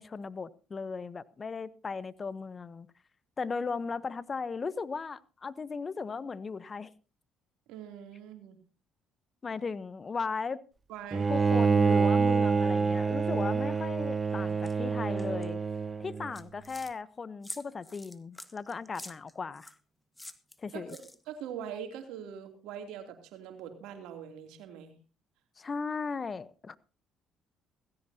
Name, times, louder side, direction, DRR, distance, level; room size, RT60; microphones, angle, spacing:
voice 1, 0.0-2.9 3.4-6.9 9.4-10.6 11.3-15.6 16.0-19.7 20.6-21.0 25.6-26.8, left 5 dB, 35° left, 0.9 m, -37 dB
voice 2, 7.7-8.6 10.9-11.3 20.7-24.9, right 8 dB, 80° right, 2.9 m, -43 dB
Bowed string instrument, 11.1-16.3, right 5 dB, 25° right, 0.8 m, -27 dB
sound 1, 14.6-14.7 15.2-15.5 16.1-16.9 17.4-19.8 20.2-21.4, left 1 dB, 10° left, 1.6 m, -46 dB
17.5 x 16.0 x 2.8 m
supercardioid pair, 70°, 0 cm